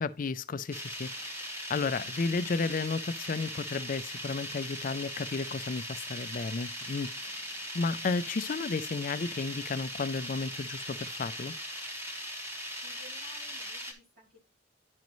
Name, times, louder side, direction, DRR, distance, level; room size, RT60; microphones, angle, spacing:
voice 1, 0.0-1.3 1.7-11.5, left 4 dB, 50° left, 0.4 m, -33 dB
sound 1, 0.7-13.9, equal, 15° right, 1.3 m, -39 dB
voice 2, 12.8-14.5, left 1 dB, 65° right, 3.2 m, -56 dB
10.5 x 5.2 x 3.1 m
head